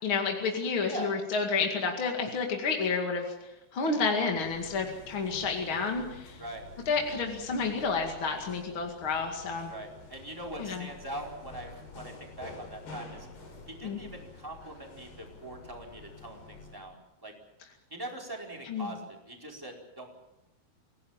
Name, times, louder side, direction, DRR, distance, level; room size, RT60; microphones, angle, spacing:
voice 1, 0.0-6.4 6.9-9.7 10.6-10.8 13.8-14.0 18.7-18.9, left 4 dB, 40° left, 2 dB, 2.5 m, -30 dB
voice 2, 0.8-1.1 6.4-6.7 9.7-13.3 13.7-17.3 17.9-20.1, right 1 dB, 5° right, 0 dB, 4.3 m, -42 dB
sound 1, 4.3-16.9, left 3 dB, 85° left, 6.8 m, -49 dB
28.5 x 17.5 x 7.4 m, 0.92 s
omnidirectional pair, 4.4 m